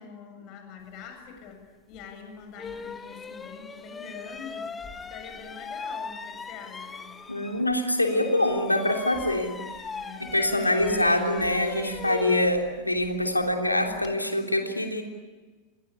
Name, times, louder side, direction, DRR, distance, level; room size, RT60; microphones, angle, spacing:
voice 1, 0.0-4.7 5.1-7.1 9.9-10.4, left 6 dB, 40° left, 5 dB, 7.4 m, -44 dB
sound 1, 1.9-2.1 2.6-7.7 8.0-14.2, left 5 dB, 15° left, 1.7 m, -40 dB
voice 2, 7.3-9.6 10.2-15.0, left 1 dB, 85° left, 3 dB, 3.2 m, -25 dB
28.5 x 22.5 x 8.5 m, 1.4 s
figure-of-eight pair, 90°, 0 cm